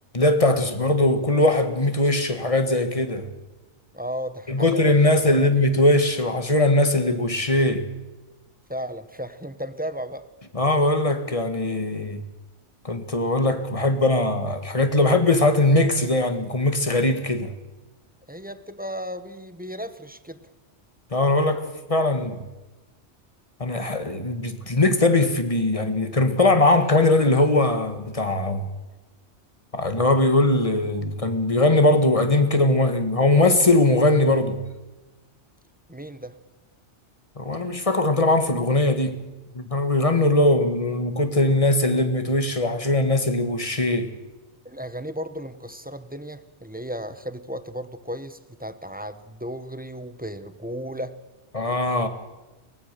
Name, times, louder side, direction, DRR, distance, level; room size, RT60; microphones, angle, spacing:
voice 1, 0.1-3.3 4.5-7.9 10.5-12.2 12.8-17.5 21.1-22.4 23.6-28.7 29.7-34.6 37.4-39.2 39.5-44.1 51.5-52.1, left 2 dB, 30° left, 1.7 m, -20 dB
voice 2, 3.9-5.5 8.7-10.3 18.3-20.5 35.9-36.4 44.6-51.2, equal, 10° right, 0.9 m, -35 dB
23.5 x 18.5 x 6.8 m
omnidirectional pair, 1.2 m